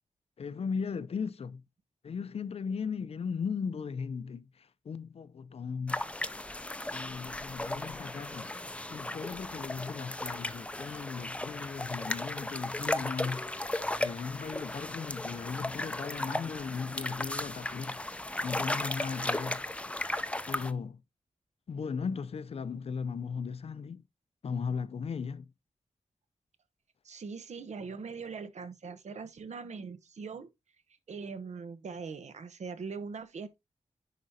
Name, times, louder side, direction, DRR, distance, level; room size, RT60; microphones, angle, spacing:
voice 1, 0.4-1.6 2.0-6.0 6.9-8.5 8.9-13.5 14.0-18.0 18.4-19.6 20.1-20.2 20.5-21.0 21.7-24.0 24.4-25.5, left 5 dB, 55° left, 0.5 m, -37 dB
sound 1, 5.9-20.7, left 1 dB, 10° left, 0.5 m, -36 dB
voice 2, 27.0-30.5 31.1-33.6, right 5 dB, 75° right, 1.0 m, -41 dB
10.5 x 5.0 x 2.8 m
wide cardioid pair, 150°, 12 cm